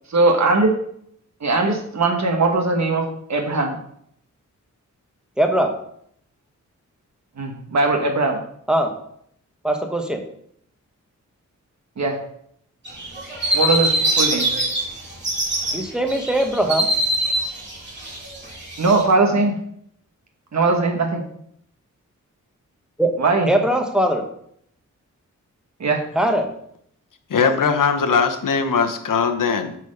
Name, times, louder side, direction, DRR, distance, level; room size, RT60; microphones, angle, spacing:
voice 1, 0.1-0.7 1.4-3.8 7.4-8.4 12.0-12.2 13.5-14.5 18.8-19.6 20.5-21.2 23.2-23.5 25.8-26.1, right 3 dB, 60° right, 3 dB, 1.3 m, -20 dB
voice 2, 5.4-5.7 8.7-8.9 9.6-10.2 15.7-16.9 23.0-23.1 23.5-24.2 26.2-26.5, right 1 dB, ahead, 4 dB, 1.1 m, -20 dB
sound 1, 12.9-14.8 15.1-15.7 16.1-19.0, right 1 dB, 35° right, 3.0 m, -22 dB
voice 3, 27.3-29.8, left 5 dB, 90° left, 7 dB, 1.0 m, -20 dB
9.4 x 4.2 x 6.5 m, 0.69 s
wide cardioid pair, 165°, 31 cm